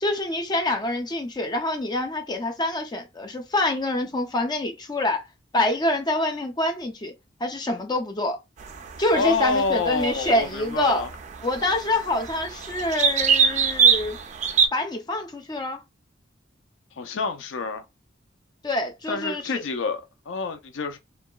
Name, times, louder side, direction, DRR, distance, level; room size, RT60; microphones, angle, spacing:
voice 1, 0.0-5.3 5.5-7.1 7.4-8.4 9.0-11.0 11.4-14.2 14.7-15.8 18.6-19.6, left 1 dB, 20° left, 0.5 m, -26 dB
sound 1, 8.6-14.7, right 6 dB, 40° right, 0.4 m, -24 dB
voice 2, 9.1-11.1 17.0-17.8 19.1-21.0, left 4 dB, 85° left, 0.5 m, -27 dB
2.8 x 2.3 x 2.2 m
head